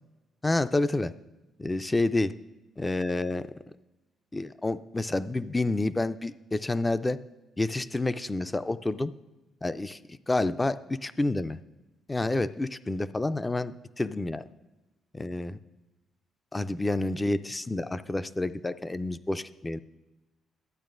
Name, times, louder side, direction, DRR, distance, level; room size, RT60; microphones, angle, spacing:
voice 1, 0.4-1.1 1.6-2.3 2.8-3.5 4.3-7.2 7.6-9.1 9.6-10.0 10.3-11.6 12.1-14.4 15.1-15.6 16.5-19.8, left 2 dB, 15° left, 13 dB, 0.3 m, -29 dB
12.0 x 8.8 x 2.5 m, 1.1 s
cardioid pair, 90°, 0 cm